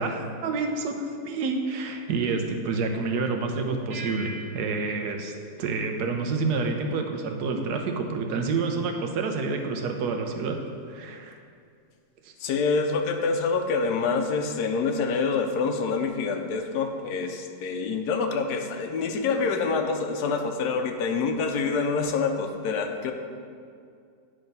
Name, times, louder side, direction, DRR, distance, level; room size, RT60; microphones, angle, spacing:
voice 1, 0.0-5.3 5.6-10.6 10.9-11.4 12.2-12.3, right 4 dB, 75° right, 4 dB, 1.3 m, -28 dB
sound 1, 3.9-6.7, right 2 dB, 50° right, 1.1 m, -43 dB
voice 2, 12.4-23.1, left 4 dB, 80° left, 5 dB, 1.2 m, -26 dB
9.8 x 3.3 x 5.3 m, 2.3 s
omnidirectional pair, 1.8 m